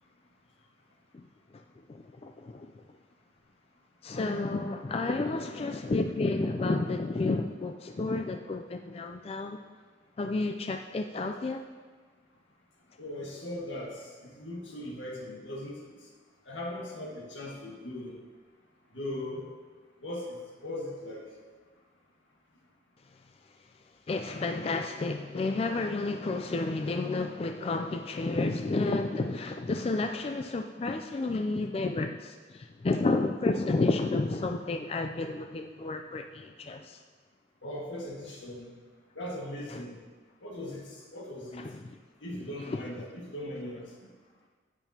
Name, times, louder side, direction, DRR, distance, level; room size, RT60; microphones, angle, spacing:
voice 1, 1.9-2.7 4.0-9.6 10.2-11.6 24.1-37.0 39.7-39.8 41.6-41.8 42.7-42.8, left 3 dB, 30° left, 5 dB, 0.3 m, -31 dB
voice 2, 13.0-14.0 14.4-15.9 16.5-18.2 18.9-19.4 20.0-20.4 20.6-21.3 37.6-38.7 39.2-40.0 40.4-40.9 41.1-41.7 42.2-43.9, left 1 dB, 85° left, -2 dB, 1.8 m, -39 dB
10.5 x 9.1 x 2.8 m, 1.4 s
head